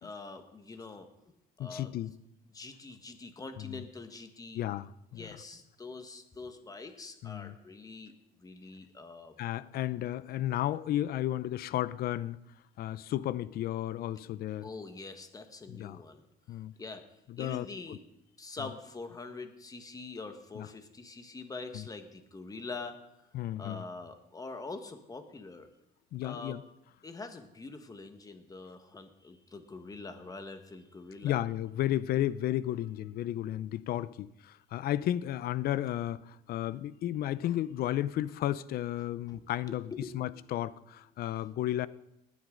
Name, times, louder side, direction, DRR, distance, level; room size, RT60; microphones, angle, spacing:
voice 1, 0.0-1.9 2.5-4.6 5.2-8.1 8.4-9.3 14.6-16.2 16.8-17.0 17.4-18.0 18.4-23.0 23.6-25.7 26.2-26.6 27.0-31.4 39.3-40.4, left 3 dB, 20° left, 7 dB, 1.5 m, -44 dB
voice 2, 1.6-2.1 3.6-3.8 4.5-5.4 7.2-7.6 9.4-12.4 12.8-14.7 15.7-16.0 16.5-16.7 17.3-18.0 18.6-18.7 20.6-20.7 21.7-21.9 23.3-23.9 26.1-26.6 31.2-39.9 40.1-41.9, left 13 dB, 65° left, 18 dB, 0.5 m, -33 dB
19.5 x 9.6 x 3.9 m, 0.85 s
cardioid pair, 110°, 17 cm